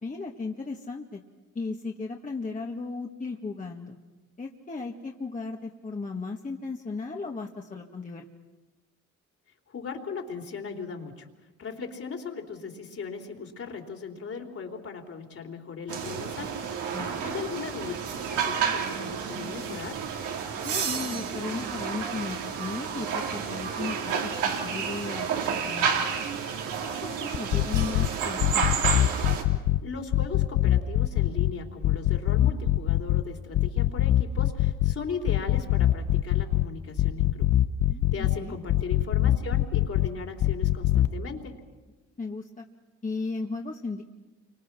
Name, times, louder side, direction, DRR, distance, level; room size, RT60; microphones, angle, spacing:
voice 1, 0.0-1.2 1.6-4.0 4.4-8.3 16.9-17.2 20.6-26.1 26.8-28.8 37.9-38.6 42.2-42.6 43.0-44.0, left 3 dB, 25° left, 0 dB, 1.9 m, -36 dB
voice 2, 9.7-11.3 11.6-16.6 17.2-17.9 18.3-20.0 29.8-37.5 38.1-41.6, left 5 dB, 50° left, 3 dB, 3.8 m, -38 dB
sound 1, 15.9-29.4, right 7 dB, 85° right, 3.2 m, -30 dB
sound 2, 27.3-28.1 28.4-29.8 30.1-31.5 31.8-33.2 33.5-34.9 35.3-36.6 37.0-38.4 38.7-40.1 40.4-41.1, left 14 dB, 75° left, 0.9 m, -23 dB
29.5 x 25.0 x 6.2 m, 1.2 s
cardioid pair, 90°, 30 cm